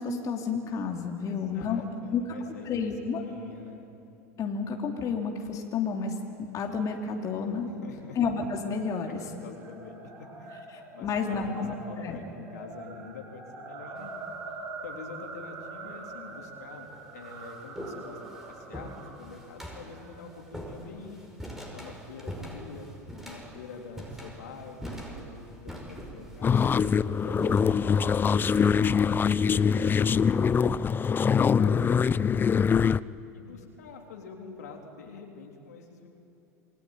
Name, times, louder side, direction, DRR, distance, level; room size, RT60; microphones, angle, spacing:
voice 1, 0.0-1.8 2.1-2.2 2.6-3.2 4.4-6.1 6.5-7.7 8.1-9.2 11.0-11.7 12.0-12.2 31.4-31.6, left 5 dB, 40° left, 2 dB, 3.0 m, -30 dB
voice 2, 1.3-3.9 7.8-8.2 9.0-10.6 10.9-14.3 14.8-16.9 17.1-18.2 18.5-22.9 23.2-26.7 27.2-28.5 28.8-31.9 32.2-32.5 33.3-36.1, left 5 dB, 75° left, 1 dB, 3.6 m, -46 dB
sound 1, 8.0-20.4, right 3 dB, 45° right, 7.8 m, -45 dB
sound 2, 14.0-14.4 15.4-15.5 16.3-16.4 16.8-30.3, equal, 5° right, 5.5 m, -43 dB
sound 3, 26.4-33.0, left 6 dB, 25° left, 0.5 m, -23 dB
27.5 x 20.5 x 9.3 m, 2.8 s
hypercardioid pair, 85°, 9 cm